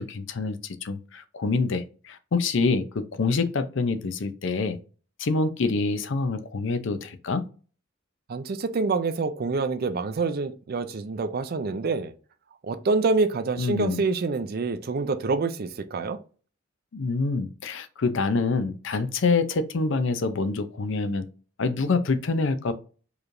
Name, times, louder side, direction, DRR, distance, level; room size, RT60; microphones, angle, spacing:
voice 1, 0.0-4.8 5.2-7.4 13.6-14.0 16.9-21.2 21.6-22.7, left 3 dB, 65° left, 0.5 m, -26 dB
voice 2, 8.3-12.1 12.7-16.2, right 4 dB, 50° right, 0.4 m, -26 dB
4.7 x 3.1 x 2.5 m
head